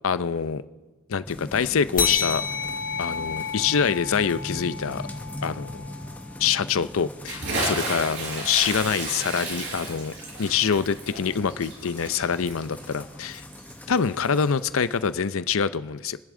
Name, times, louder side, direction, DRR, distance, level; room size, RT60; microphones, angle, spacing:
voice 1, 0.0-0.6 1.1-2.4 3.0-5.0 5.4-5.8 6.4-10.1 10.4-13.4 13.9-16.2, left 6 dB, 65° left, 15 dB, 0.5 m, -25 dB
sound 1, 1.2-15.4, left 1 dB, 5° left, 0.7 m, -41 dB
sound 2, 2.0-6.9, left 6 dB, 40° left, 1.1 m, -31 dB
Bathtub (filling or washing) / Splash splatter, 7.2-13.8, right 2 dB, 50° right, 4.3 m, -32 dB
29.0 x 10.5 x 3.8 m, 1.2 s
head